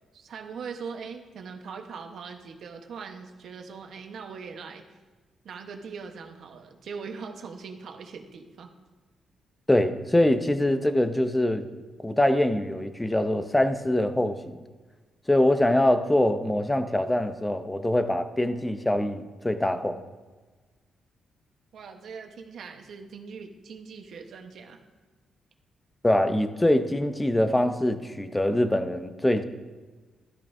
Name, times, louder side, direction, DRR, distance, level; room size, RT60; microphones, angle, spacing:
voice 1, 0.1-4.9 5.4-8.7 21.7-24.8, right 5 dB, 70° right, 4 dB, 1.1 m, -41 dB
voice 2, 9.7-11.7 12.0-14.6 15.3-20.0 26.0-29.4, left 1 dB, 10° left, 9 dB, 0.7 m, -24 dB
13.0 x 12.0 x 2.7 m, 1.3 s
cardioid pair, 115°, 0 cm